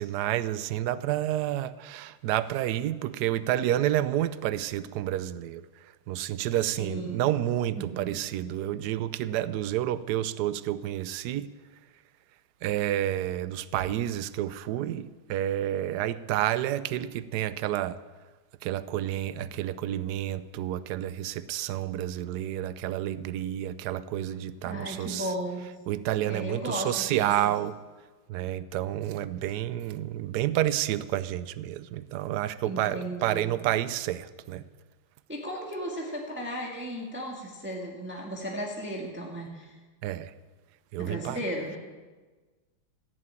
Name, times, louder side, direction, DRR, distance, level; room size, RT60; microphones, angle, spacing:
voice 1, 0.0-11.5 12.6-18.0 18.6-25.3 25.9-27.8 28.3-34.6 40.0-40.3 40.9-41.4, right 12 dB, 80° right, 0.9 m, -30 dB
voice 2, 6.8-7.4 7.7-8.2 24.6-25.7 26.2-27.3 32.6-33.6 35.3-39.8 41.0-41.8, equal, 5° right, 1.6 m, -35 dB
15.0 x 7.7 x 8.8 m
omnidirectional pair, 2.3 m